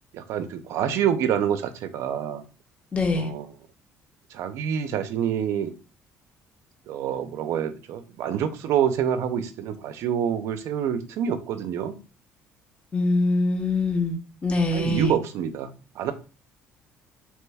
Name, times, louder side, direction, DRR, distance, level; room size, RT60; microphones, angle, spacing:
voice 1, 0.1-2.4 3.2-3.5 4.3-5.8 6.9-12.0 14.7-16.1, right 8 dB, 70° right, 10 dB, 0.4 m, -27 dB
voice 2, 2.9-3.3 12.9-15.2, left 2 dB, 25° left, 4 dB, 0.6 m, -24 dB
2.9 x 2.2 x 3.3 m, 0.34 s
cardioid pair, 135°, 5 cm